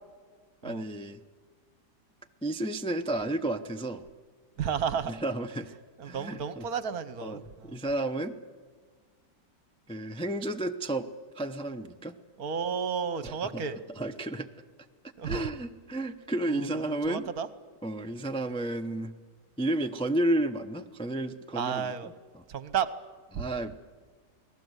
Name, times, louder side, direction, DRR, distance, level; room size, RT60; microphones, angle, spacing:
voice 1, 0.6-1.2 2.4-4.0 5.1-5.7 6.0-6.7 7.2-8.4 9.9-11.1 11.3-12.2 13.2-13.6 14.0-14.5 15.2-17.3 17.8-19.1 19.6-22.4 23.3-23.8, right 1 dB, 5° left, 6 dB, 0.4 m, -32 dB
voice 2, 4.6-5.1 6.0-7.8 12.4-13.8 15.2-15.4 16.5-17.5 21.5-22.1 22.5-22.9 23.3-23.5, right 7 dB, 65° right, 13 dB, 1.5 m, -32 dB
28.0 x 19.0 x 8.2 m, 1.5 s
omnidirectional pair, 1.8 m